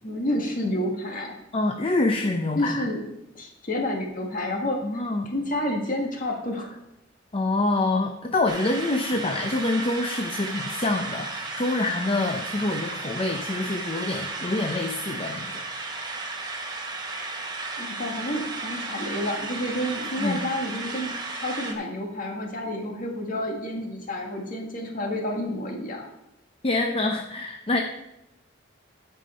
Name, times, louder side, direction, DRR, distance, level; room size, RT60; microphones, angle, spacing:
voice 1, 0.0-1.3 2.5-3.0 3.3-6.8 17.8-26.1, left 1 dB, 45° left, 1 dB, 1.7 m, -30 dB
voice 2, 1.5-2.9 4.8-5.3 7.3-15.6 20.2-20.4 26.6-27.8, left 2 dB, 30° left, 4 dB, 0.6 m, -26 dB
sound 1, 8.5-21.7, right 3 dB, 20° right, 1.2 m, -34 dB
14.0 x 5.5 x 4.3 m, 0.86 s
head